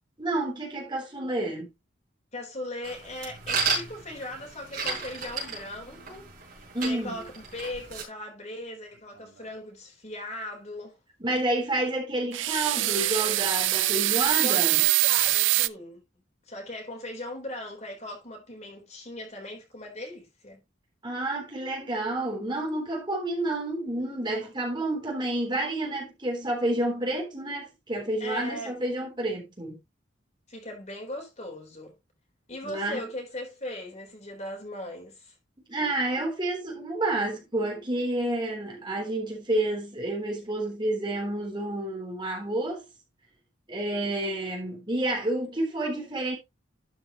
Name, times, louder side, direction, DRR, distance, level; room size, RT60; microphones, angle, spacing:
voice 1, 0.2-1.7 6.7-7.2 11.2-14.8 21.0-29.8 32.6-33.0 35.7-42.8 43.7-46.3, right 1 dB, 25° right, 3.5 m, -29 dB
voice 2, 2.3-6.3 6.8-10.9 14.4-16.0 16.5-20.6 28.2-28.8 30.5-31.9 32.5-35.3, left 1 dB, 35° left, 3.9 m, -38 dB
sound 1, 2.8-8.0, right 4 dB, 45° right, 5.1 m, -34 dB
sound 2, 12.3-15.7, right 16 dB, 70° right, 0.5 m, -24 dB
12.0 x 6.0 x 3.0 m
head